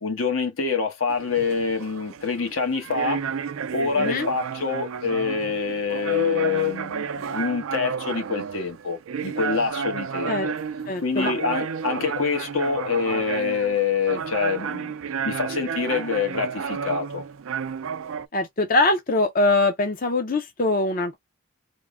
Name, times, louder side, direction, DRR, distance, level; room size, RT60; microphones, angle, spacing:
voice 1, 0.0-3.2 3.7-10.5 11.0-14.9 15.2-17.2, left 5 dB, 80° left, 1.1 m, -26 dB
sound 1, 1.1-18.3, right 6 dB, 85° right, 0.4 m, -31 dB
voice 2, 4.0-4.3 10.3-10.5 10.9-11.3 18.3-21.2, left 2 dB, 40° left, 0.5 m, -22 dB
3.6 x 2.1 x 3.5 m
head